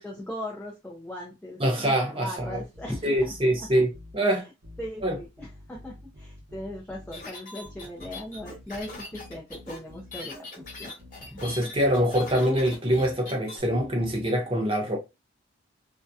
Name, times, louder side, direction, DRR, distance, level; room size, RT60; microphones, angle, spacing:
voice 1, 0.0-3.8 4.2-4.4 4.8-11.6, left 1 dB, 5° left, 0.4 m, -39 dB
voice 2, 1.6-2.6 3.0-4.4 5.0-5.2 11.4-15.0, equal, 25° right, 0.7 m, -24 dB
sound 1, 2.4-4.2 4.6-7.2 7.6-10.2 10.6-13.2 13.6-14.3, left 1 dB, 70° right, 0.8 m, -48 dB
sound 2, 7.1-13.6, left 2 dB, 40° left, 1.2 m, -41 dB
2.7 x 2.1 x 2.3 m
head